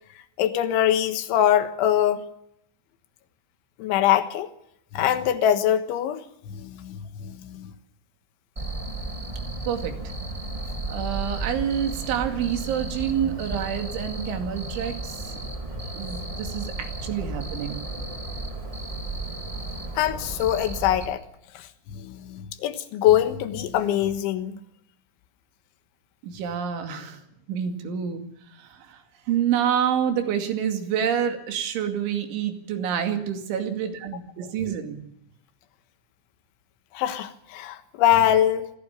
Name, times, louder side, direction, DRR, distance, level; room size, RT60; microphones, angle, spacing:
voice 1, 0.4-2.2 3.8-4.5 4.9-6.2 6.5-7.7 20.0-21.2 21.9-24.6 37.0-38.7, left 11 dB, 90° left, 3.7 m, -23 dB
Cricket, 8.6-21.1, right 2 dB, 15° right, 1.2 m, -33 dB
voice 2, 9.7-10.0 10.9-15.4 16.0-17.9 26.2-27.2 27.5-35.0, right 8 dB, 80° right, 4.8 m, -28 dB
25.5 x 15.5 x 7.2 m
omnidirectional pair, 5.4 m